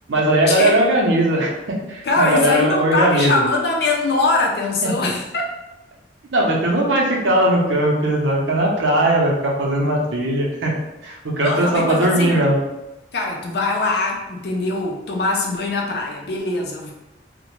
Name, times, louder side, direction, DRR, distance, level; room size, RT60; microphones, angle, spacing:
voice 1, 0.1-3.4 4.8-5.0 6.3-10.7 11.0-12.6, right 1 dB, 85° right, -1 dB, 0.6 m, -19 dB
voice 2, 2.0-5.5 11.4-12.4 13.1-16.9, left 3 dB, 60° left, 0 dB, 0.5 m, -22 dB
2.4 x 2.1 x 3.0 m, 1.0 s
head